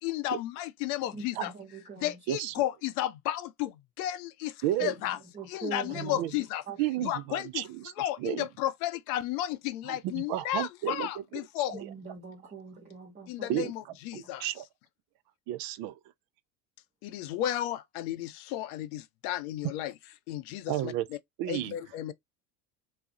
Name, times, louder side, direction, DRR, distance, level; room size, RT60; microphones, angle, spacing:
voice 1, 0.0-1.5 2.0-5.2 5.5-6.6 7.0-7.6 8.0-11.8 13.3-14.5 17.0-19.9 20.3-20.9 21.5-22.1, left 13 dB, 65° left, 0.6 m, -33 dB
voice 2, 1.1-2.2 4.8-4.9 5.3-6.3 6.7-7.0 11.7-13.5, right 4 dB, 20° right, 0.8 m, -42 dB
voice 3, 4.6-4.9 5.9-6.3 6.8-7.9 8.2-8.5 9.9-11.4 11.8-11.9 13.5-13.7 14.1-14.6 15.5-16.0 20.7-21.1 21.4-21.8, right 14 dB, 50° right, 0.5 m, -32 dB
2.3 x 2.0 x 2.6 m
hypercardioid pair, 75°, 48 cm